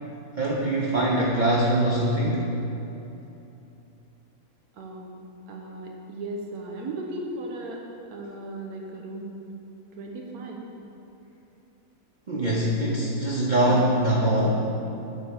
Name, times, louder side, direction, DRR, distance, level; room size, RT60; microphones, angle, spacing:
voice 1, 0.4-2.4 12.3-14.6, right 1 dB, 40° right, -5 dB, 0.7 m, -23 dB
voice 2, 4.8-5.2 5.5-7.8 8.1-9.3 10.0-10.6, right 2 dB, 85° right, 0 dB, 1.4 m, -36 dB
9.7 x 3.4 x 6.3 m, 2.9 s
omnidirectional pair, 1.5 m